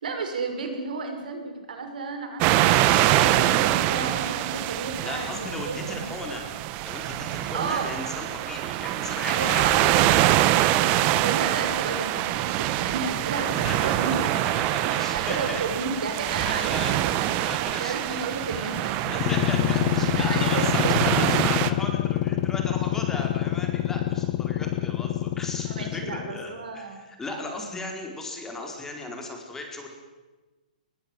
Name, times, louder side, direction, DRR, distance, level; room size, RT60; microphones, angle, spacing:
voice 1, 0.0-5.4 5.7-6.1 7.5-7.9 9.3-14.5 15.1-17.3 17.8-19.0 20.2-21.5 25.7-27.0, right 4 dB, 75° right, 5 dB, 6.2 m, -33 dB
sound 1, 2.4-21.7, right 14 dB, 30° right, 1.2 m, -24 dB
voice 2, 5.0-6.4 6.8-10.0 13.5-15.6 16.4-29.9, left 2 dB, 10° left, 2 dB, 4.4 m, -36 dB
sound 2, 19.1-26.4, left 12 dB, 35° left, 1.4 m, -26 dB
21.5 x 21.5 x 9.0 m, 1.2 s
hypercardioid pair, 150°, 5 cm